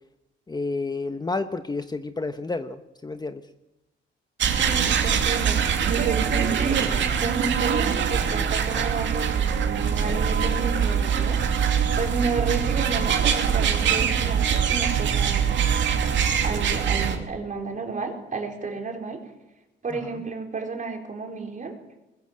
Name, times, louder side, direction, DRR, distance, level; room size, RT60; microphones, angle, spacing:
voice 1, 0.5-3.4 19.9-20.2, left 3 dB, 20° left, 9 dB, 1.1 m, -30 dB
sound 1, 4.4-17.2, right 7 dB, 70° right, 2.8 m, -23 dB
voice 2, 4.5-15.6 16.4-19.2 19.8-21.8, right 4 dB, 40° right, 2 dB, 4.6 m, -32 dB
21.0 x 14.0 x 8.7 m, 0.99 s
cardioid pair, 90°, 20 cm